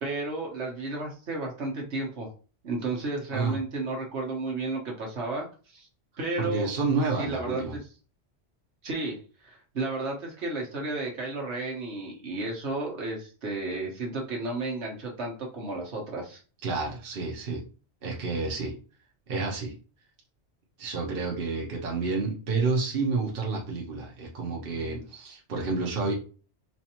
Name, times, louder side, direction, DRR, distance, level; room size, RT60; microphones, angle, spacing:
voice 1, 0.0-2.3 2.6-5.9 6.2-6.7 7.2-7.8 8.8-16.4, right 2 dB, 75° right, -1 dB, 1.4 m, -33 dB
voice 2, 6.4-7.8 16.6-17.6 18.0-18.7 19.3-19.7 20.8-26.1, right 4 dB, 55° right, -1 dB, 1.1 m, -29 dB
4.4 x 2.6 x 2.9 m, 0.36 s
omnidirectional pair, 1.1 m